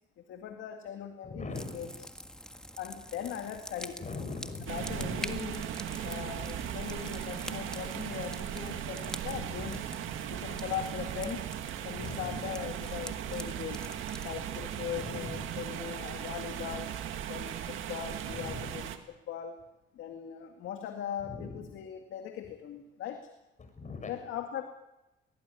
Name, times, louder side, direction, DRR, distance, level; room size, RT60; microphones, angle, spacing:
voice 1, 0.3-2.1 2.8-4.0 4.7-5.7 6.0-9.9 10.3-11.5 11.8-13.9 14.2-16.9 17.2-18.9 19.3-19.5 19.9-23.3 24.1-24.6, left 9 dB, 80° left, 5 dB, 2.1 m, -40 dB
voice 2, 1.2-1.9 4.0-5.2 6.4-6.5 9.3-9.4 12.0-12.4 14.9-15.3 18.3-18.7 21.2-21.6 23.6-24.1, left 3 dB, 40° left, 7 dB, 6.7 m, -41 dB
sound 1, 1.5-17.8, equal, 5° left, 1.6 m, -47 dB
sound 2, 4.7-19.0, right 10 dB, 85° right, 2.0 m, -38 dB
21.5 x 18.5 x 9.7 m, 0.98 s
cardioid pair, 90°, 20 cm